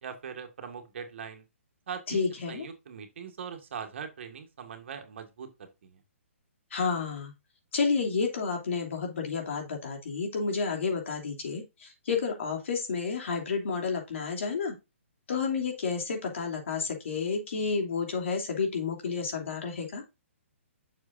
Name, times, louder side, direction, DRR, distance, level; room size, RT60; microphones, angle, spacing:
voice 1, 0.0-1.4 1.9-6.0, right 7 dB, 60° right, 4 dB, 1.8 m, -41 dB
voice 2, 2.1-2.7 6.7-7.3 7.7-14.7 15.3-20.0, left 5 dB, 65° left, 2 dB, 2.9 m, -30 dB
8.0 x 6.7 x 2.6 m, 0.25 s
hypercardioid pair, 140°, 7 cm